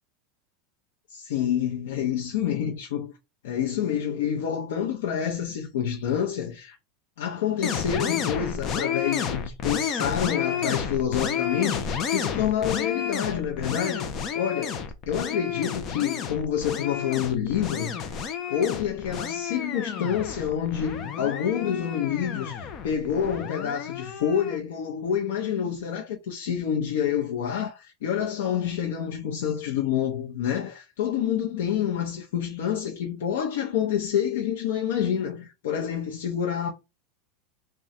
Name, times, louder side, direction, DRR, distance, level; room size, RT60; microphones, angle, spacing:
voice 1, 1.1-3.1 3.4-6.8 7.2-18.2 18.5-36.7, left 9 dB, 90° left, 0.7 m, -28 dB
sound 1, 7.6-24.6, left 7 dB, 30° left, 0.6 m, -31 dB
3.7 x 2.3 x 4.2 m
supercardioid pair, 160°, 0 cm